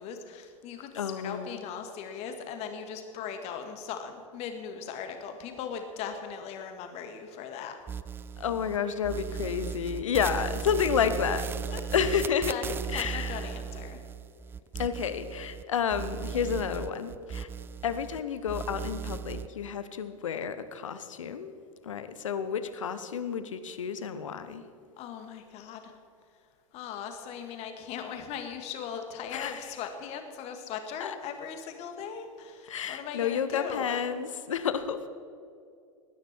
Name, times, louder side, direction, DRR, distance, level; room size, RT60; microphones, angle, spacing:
voice 1, 0.0-7.8 11.7-12.1 12.5-14.0 25.0-25.9 26.7-34.0, left 7 dB, 35° left, 6 dB, 1.9 m, -39 dB
voice 2, 0.9-1.6 8.4-11.5 11.9-12.5 12.9-13.5 14.8-17.5 17.8-21.5 21.8-24.6 29.3-29.6 31.0-31.1 32.7-35.1, left 7 dB, 65° left, 11 dB, 1.0 m, -30 dB
sound 1, 7.9-8.8 9.0-15.6 15.9-18.2 18.5-19.5, right 7 dB, 15° right, 0.3 m, -37 dB
19.0 x 10.5 x 4.6 m, 2.4 s
figure-of-eight pair, 90°, 17 cm